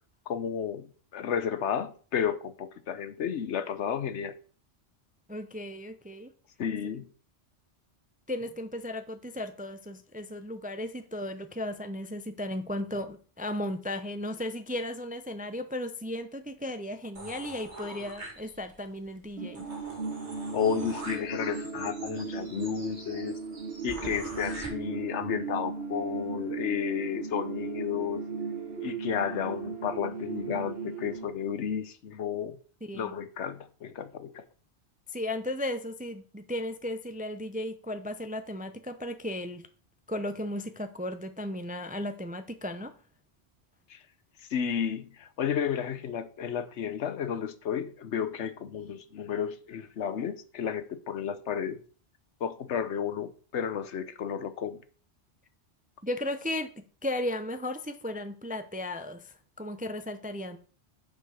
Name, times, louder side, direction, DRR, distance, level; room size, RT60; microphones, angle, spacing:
voice 1, 0.3-4.3 6.6-7.1 20.5-23.4 23.8-28.2 28.8-32.6 32.9-34.4 43.9-44.0 44.5-51.8 52.4-54.8, left 8 dB, 80° left, 1.1 m, -32 dB
voice 2, 5.3-6.3 6.8-6.9 8.3-19.7 32.9-33.1 35.1-39.7 40.1-42.9 56.0-60.6, left 1 dB, 15° right, 0.4 m, -35 dB
sound 1, 17.2-18.8 19.2-19.3 19.5-24.7, right 1 dB, 80° right, 2.6 m, -44 dB
sound 2, 19.4-31.3, right 4 dB, 65° right, 1.2 m, -37 dB
6.6 x 5.0 x 6.4 m
omnidirectional pair, 1.2 m